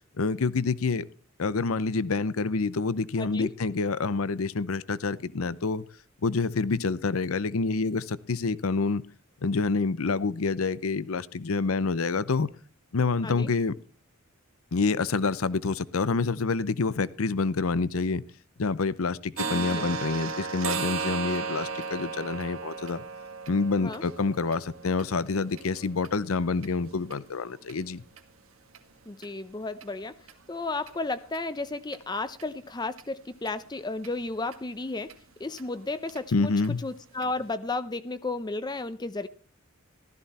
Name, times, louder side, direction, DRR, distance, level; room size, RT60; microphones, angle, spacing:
voice 1, 0.2-1.0 1.4-5.8 6.2-9.0 9.4-12.5 12.9-13.8 14.7-18.2 18.6-23.0 23.5-28.0 36.3-36.8, left 4 dB, 85° left, 0.7 m, -27 dB
voice 2, 3.2-3.5 13.2-13.5 19.4-19.8 23.8-24.0 29.1-30.2 30.5-35.1 35.4-36.5 36.8-39.3, left 3 dB, 20° left, 0.5 m, -33 dB
sound 1, 19.4-27.2 27.6-27.7 28.2-28.3 28.7-28.8 29.2-29.3 29.8-29.9 30.3-30.4 30.9-31.0 31.3-31.4 31.9-32.0 32.4-32.5 33.0-33.1 33.5-33.6 34.0-34.1 34.5-34.6 35.1-35.2 35.6-35.7 36.1-36.2 36.6-36.7 37.2-37.3, right 5 dB, 80° right, 1.8 m, -35 dB
15.0 x 13.0 x 4.2 m
head